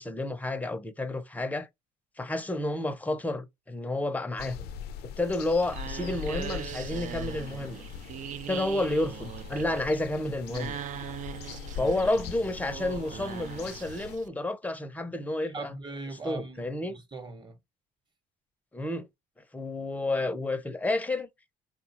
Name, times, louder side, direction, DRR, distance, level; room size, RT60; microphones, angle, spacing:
voice 1, 0.0-1.7 2.2-4.6 5.2-7.8 8.5-10.8 11.8-15.7 16.2-16.9 18.7-19.1 19.5-21.3, left 2 dB, 10° left, 0.6 m, -30 dB
sound 1, 4.4-14.2, left 8 dB, 75° left, 0.5 m, -41 dB
sound 2, 5.2-14.3, right 10 dB, 50° right, 0.4 m, -41 dB
voice 2, 15.4-17.6, right 3 dB, 25° right, 1.2 m, -40 dB
3.8 x 2.3 x 2.9 m
cardioid pair, 110°, 17 cm